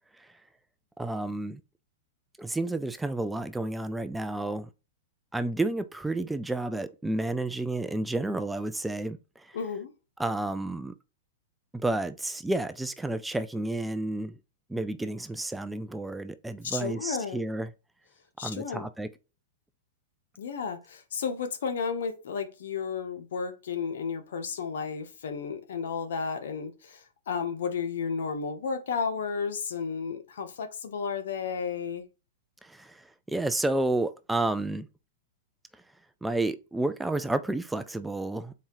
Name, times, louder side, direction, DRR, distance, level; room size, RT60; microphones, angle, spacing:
voice 1, 1.0-1.6 2.4-4.7 5.3-9.6 10.2-10.9 11.7-14.3 14.7-17.7 18.4-19.1 32.6-34.9 36.2-38.5, right 2 dB, 5° right, 0.3 m, -31 dB
voice 2, 9.5-9.9 16.6-17.4 18.4-18.9 20.4-32.0, left 6 dB, 75° left, 1.0 m, -33 dB
4.3 x 2.7 x 3.7 m
hypercardioid pair, 140°, 0 cm